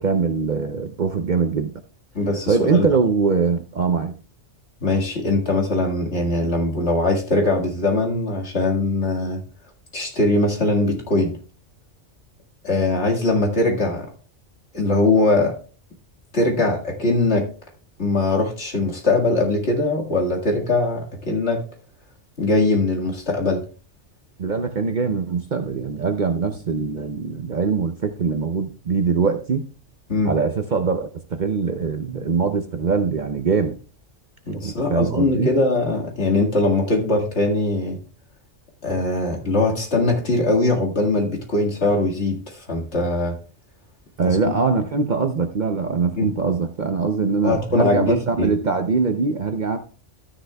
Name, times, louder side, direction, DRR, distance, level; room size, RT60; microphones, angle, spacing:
voice 1, 0.0-1.7 2.5-4.2 24.4-29.7 30.2-33.8 34.6-35.5 44.2-49.8, right 5 dB, 45° right, 6 dB, 0.7 m, -22 dB
voice 2, 2.1-2.9 4.8-9.4 9.9-11.3 12.6-14.1 14.7-15.5 16.3-17.5 18.0-21.6 22.4-23.7 30.1-30.3 34.5-38.0 38.8-43.4 44.2-44.5 46.1-46.3 47.4-48.5, left 2 dB, 65° left, -1 dB, 2.2 m, -21 dB
12.5 x 9.9 x 2.3 m, 0.38 s
omnidirectional pair, 1.3 m